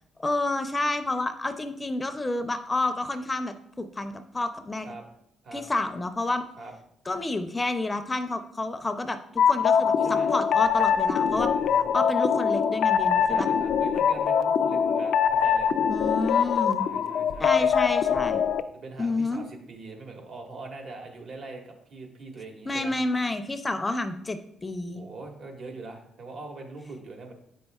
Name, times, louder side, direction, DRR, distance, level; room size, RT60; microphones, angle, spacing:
voice 1, 0.2-4.9 5.5-6.4 7.1-11.5 11.9-13.5 15.9-16.9 17.4-18.4 19.0-19.4 22.7-25.0, left 2 dB, 20° left, 9 dB, 0.5 m, -29 dB
sound 1, 9.4-18.6, left 7 dB, 75° left, 0.3 m, -23 dB
voice 2, 10.0-10.3 11.3-11.8 13.1-15.7 16.7-17.8 18.7-22.9 24.9-27.3, right 3 dB, 60° right, 2 dB, 1.5 m, -42 dB
8.3 x 5.4 x 2.3 m, 0.74 s
cardioid pair, 90°, 0 cm